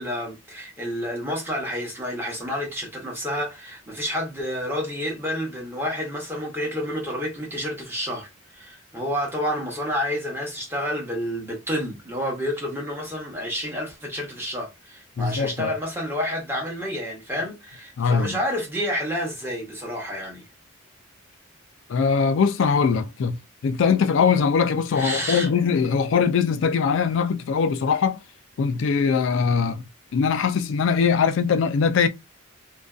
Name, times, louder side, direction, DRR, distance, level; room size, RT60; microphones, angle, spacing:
voice 1, 0.0-20.4 24.9-25.5, equal, 10° right, 0.8 m, -29 dB
voice 2, 15.2-15.7 18.0-18.4 21.9-23.4 23.6-28.2 28.6-29.8 30.1-32.1, left 6 dB, 65° left, 0.3 m, -21 dB
2.5 x 2.2 x 2.3 m
head